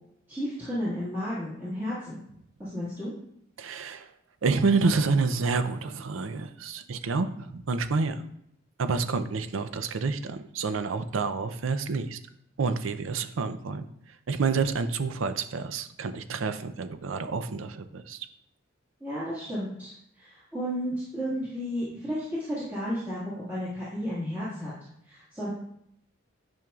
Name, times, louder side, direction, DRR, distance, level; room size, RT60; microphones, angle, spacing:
voice 1, 0.3-2.2 2.6-3.1 19.0-24.7 25.0-25.5, equal, 10° right, -12 dB, 1.8 m, -33 dB
voice 2, 3.6-4.1 4.4-8.3 8.8-12.2 12.6-13.9 14.3-18.3, right 4 dB, 80° right, 10 dB, 0.5 m, -28 dB
10.5 x 5.4 x 2.4 m, 0.73 s
head